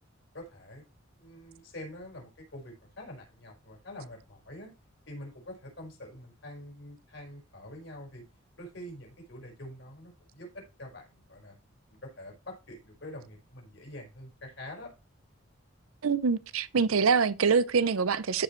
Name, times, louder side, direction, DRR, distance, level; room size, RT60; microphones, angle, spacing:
voice 1, 0.3-0.8 1.2-4.7 5.1-8.2 8.6-11.6 11.9-14.9, left 1 dB, 60° left, 4.7 m, -45 dB
voice 2, 16.0-18.4, right 5 dB, 85° right, 0.6 m, -25 dB
14.0 x 5.1 x 3.1 m
head